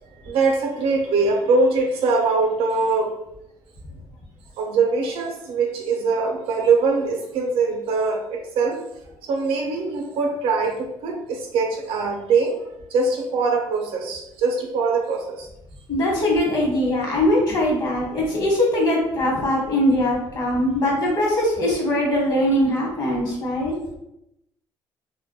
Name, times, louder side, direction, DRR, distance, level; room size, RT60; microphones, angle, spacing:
voice 1, 0.2-3.1 4.6-8.8 9.2-12.5 12.9-15.5, right 4 dB, 85° right, 2 dB, 0.5 m, -22 dB
voice 2, 15.9-23.7, left 1 dB, 45° left, -3 dB, 1.0 m, -21 dB
2.2 x 2.1 x 2.7 m, 0.85 s
cardioid pair, 100°, 9 cm